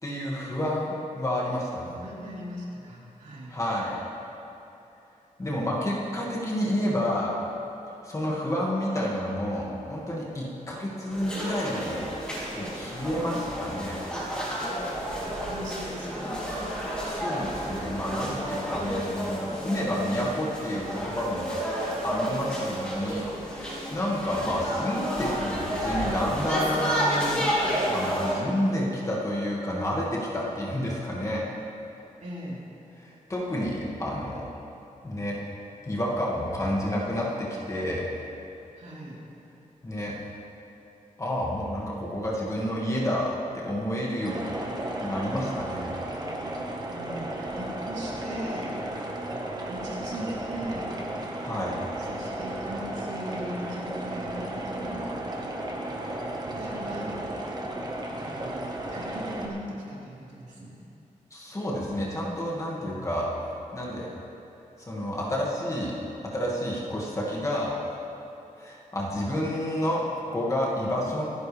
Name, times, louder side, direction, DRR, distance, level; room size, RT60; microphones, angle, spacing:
voice 1, 0.0-2.0 3.5-4.0 5.4-7.3 8.0-12.0 12.5-14.0 17.1-21.5 22.0-23.3 23.5-27.5 27.9-31.4 33.0-34.4 35.0-35.4 35.8-38.1 39.8-40.1 41.2-44.5 45.0-45.9 51.4-51.8 61.3-63.3 63.7-64.1 64.9-65.9 66.3-67.8 68.6-71.2, left 1 dB, 20° left, -5 dB, 2.1 m, -29 dB
voice 2, 2.0-3.6 15.5-16.4 18.2-18.4 32.2-32.6 38.8-39.2 46.9-48.7 49.7-51.0 52.0-55.2 56.5-57.3 58.1-60.8 62.8-63.1, equal, 60° right, -6 dB, 3.7 m, -39 dB
sound 1, 11.1-28.3, equal, 5° left, 3.3 m, -31 dB
sound 2, 44.2-59.5, right 1 dB, 30° right, 1.5 m, -34 dB
27.0 x 10.5 x 3.5 m, 2.9 s
wide cardioid pair, 180°, 14 cm